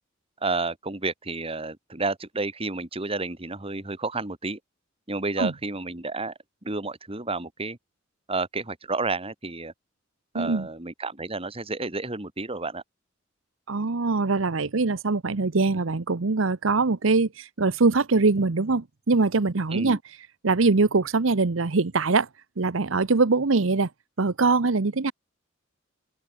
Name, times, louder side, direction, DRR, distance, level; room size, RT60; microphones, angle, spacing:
voice 1, 0.4-4.6 5.1-6.3 6.6-7.8 8.3-9.7 10.3-12.8 19.7-20.0, right 3 dB, 30° right, 2.2 m, -31 dB
voice 2, 10.3-10.7 13.7-20.0 20.4-22.3 22.6-23.9 24.2-25.1, right 3 dB, 75° right, 0.9 m, -23 dB
open air
head